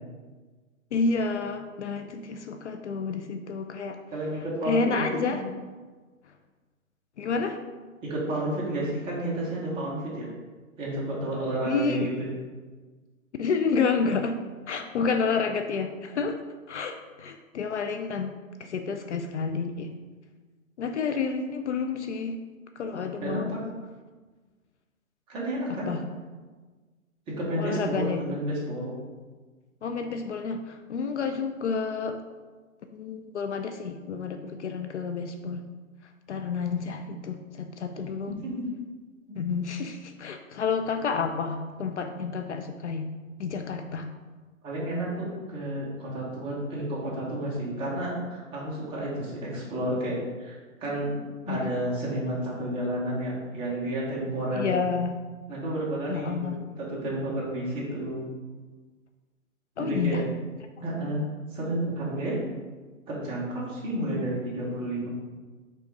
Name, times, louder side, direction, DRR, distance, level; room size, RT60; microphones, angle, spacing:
voice 1, 0.9-4.0 4.6-5.4 6.3-6.4 7.2-7.6 11.6-12.1 13.4-14.4 14.7-16.4 16.7-18.3 18.6-19.9 20.8-22.4 22.8-23.6 25.7-26.1 27.6-28.2 29.8-32.2 32.9-35.7 36.3-38.4 39.4-43.1 43.4-44.1 51.5-51.7 54.5-55.2 56.1-56.6 59.8-60.3, left 5 dB, 55° left, 7 dB, 0.5 m, -29 dB
voice 2, 4.1-5.3 8.0-10.3 10.8-12.3 23.2-23.6 25.3-25.9 27.3-28.9 37.9-38.0 38.4-38.7 44.6-51.1 51.5-54.7 55.5-56.5 56.8-58.3 59.8-60.2 60.8-61.2 61.5-62.4 63.1-65.1, right 1 dB, 15° right, -6 dB, 1.1 m, -31 dB
5.4 x 3.7 x 5.2 m, 1.4 s
hypercardioid pair, 150°, 42 cm